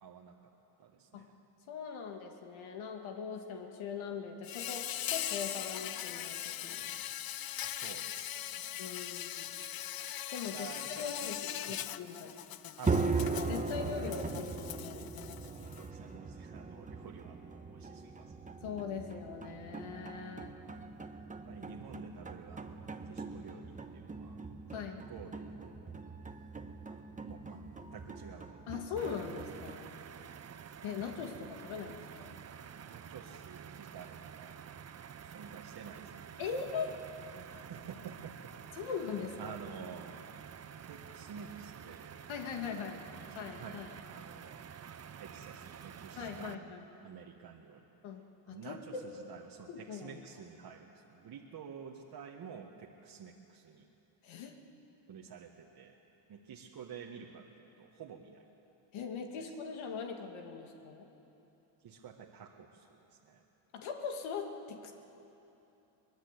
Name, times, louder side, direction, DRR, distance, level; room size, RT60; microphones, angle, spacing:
voice 1, 0.0-0.5 0.8-1.4 7.2-8.9 10.4-11.8 12.8-13.4 13.9-14.1 15.4-18.3 20.5-20.8 21.5-24.4 24.9-26.0 26.9-27.7 27.9-28.9 29.7-30.0 32.7-36.8 37.3-38.9 39.4-40.2 40.8-42.2 42.7-43.8 44.1-44.6 45.2-47.9 48.5-53.9 55.1-56.0 56.3-58.5 61.8-63.4, right 6 dB, 50° right, 0 dB, 1.8 m, -51 dB
voice 2, 1.7-6.9 8.8-9.6 10.3-12.3 13.5-15.1 18.6-20.5 24.7-25.0 28.7-29.9 30.8-32.4 36.4-37.0 38.7-39.6 42.3-43.0 43.4-43.9 46.2-46.8 48.0-49.3 49.7-50.2 54.2-54.6 58.9-61.1 63.7-64.9, left 6 dB, 70° left, 3 dB, 2.3 m, -41 dB
Insect, 4.4-15.9, left 11 dB, 45° left, 0.8 m, -40 dB
sound 1, 12.8-29.7, right 4 dB, 15° right, 1.2 m, -40 dB
sound 2, 29.0-46.5, right 8 dB, 30° right, 0.8 m, -49 dB
23.5 x 20.0 x 8.3 m, 3.0 s
cardioid pair, 100°, 49 cm